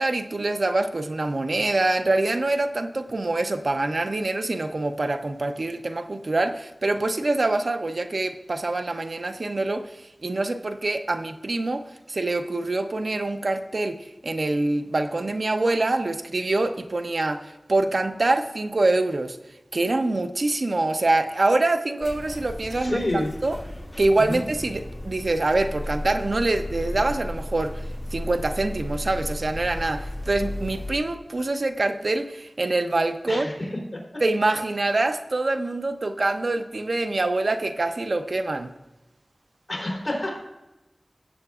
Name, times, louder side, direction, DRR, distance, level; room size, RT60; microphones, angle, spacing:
voice 1, 0.0-19.4 19.7-23.6 24.0-33.5 34.2-38.7, right 2 dB, 65° right, 8 dB, 0.7 m, -25 dB
sound 1, 22.0-31.0, left 1 dB, 15° left, 2.0 m, -34 dB
voice 2, 22.8-23.3 24.3-24.4 33.3-34.2 39.7-40.4, left 1 dB, 35° left, -2 dB, 3.6 m, -28 dB
17.0 x 7.9 x 2.4 m, 1.0 s
wide cardioid pair, 65°, 0 cm